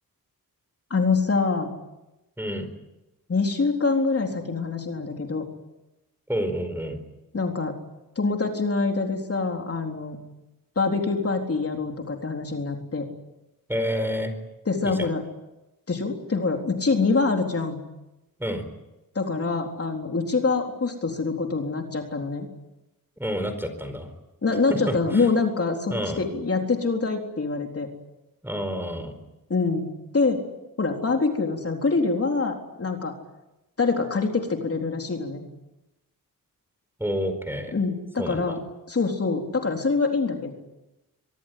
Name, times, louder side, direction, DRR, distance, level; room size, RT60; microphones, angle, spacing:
voice 1, 0.9-1.7 3.3-5.5 7.3-7.8 8.2-10.2 10.8-13.1 14.7-15.2 15.9-17.9 19.2-22.5 24.4-27.9 29.5-30.4 30.8-33.1 33.8-35.4 37.7-38.6 38.9-40.5, left 4 dB, 40° left, 2 dB, 3.9 m, -25 dB
voice 2, 2.4-2.7 6.3-7.0 13.7-14.3 14.8-15.1 18.4-18.6 23.2-24.1 24.7-25.3 25.9-26.2 28.4-29.1 37.0-37.7 38.2-38.6, equal, 5° right, 9 dB, 4.8 m, -29 dB
24.0 x 23.0 x 9.5 m, 0.98 s
wide cardioid pair, 115°, 35 cm